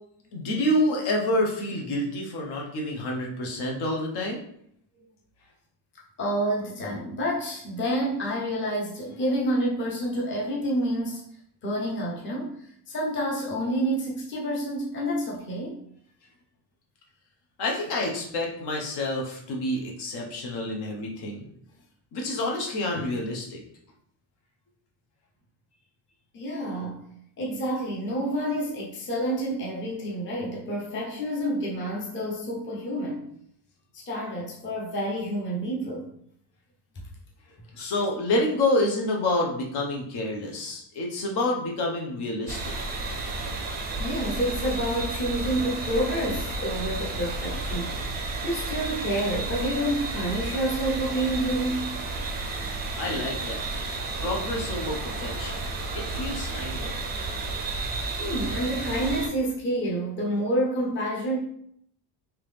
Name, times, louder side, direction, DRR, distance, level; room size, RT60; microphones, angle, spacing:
voice 1, 0.3-4.4 17.6-21.5 22.1-23.6 37.8-42.7 52.5-52.7 53.0-53.6 54.2-55.6 55.9-57.0, left 1 dB, 65° left, 0 dB, 1.0 m, -28 dB
voice 2, 6.2-11.2 11.6-12.5 12.9-15.8 22.9-23.1 26.3-27.0 27.4-33.2 33.9-36.1 44.0-47.9 48.4-52.0 58.2-61.4, right 1 dB, 25° left, -3 dB, 0.8 m, -28 dB
sound 1, 42.5-59.3, right 3 dB, 25° right, 0.4 m, -32 dB
3.7 x 2.9 x 3.3 m, 0.68 s
cardioid pair, 165°, 43 cm